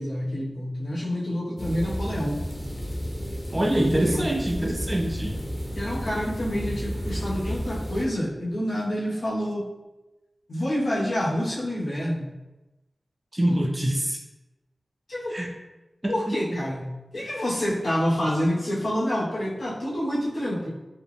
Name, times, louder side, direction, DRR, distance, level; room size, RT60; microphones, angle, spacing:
voice 1, 0.0-2.4 3.6-4.2 5.7-9.7 10.5-12.3 13.5-13.6 15.1-15.4 16.1-20.7, equal, 80° left, -8 dB, 1.3 m, -28 dB
Howling winter storm ambient sounds, 1.6-8.0, equal, 25° left, 1.0 m, -32 dB
voice 2, 3.5-5.3 13.3-14.2 15.3-15.5 16.0-16.4 17.2-17.3, right 1 dB, 20° right, 2 dB, 0.5 m, -25 dB
4.5 x 2.1 x 3.4 m, 1.0 s
wide cardioid pair, 65°, 0 cm